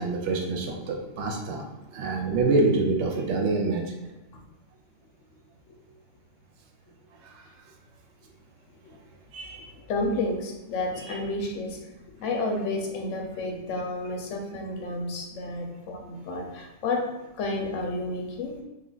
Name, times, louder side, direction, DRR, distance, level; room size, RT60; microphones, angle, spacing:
voice 1, 0.0-1.6 1.9-3.9 7.2-7.4 9.3-9.7 10.9-11.2, right 3 dB, 70° right, 1 dB, 0.9 m, -26 dB
voice 2, 9.9-11.8 12.2-17.0 17.4-18.6, left 2 dB, 80° left, 2 dB, 1.0 m, -31 dB
3.1 x 2.4 x 3.8 m, 1.0 s
omnidirectional pair, 1.3 m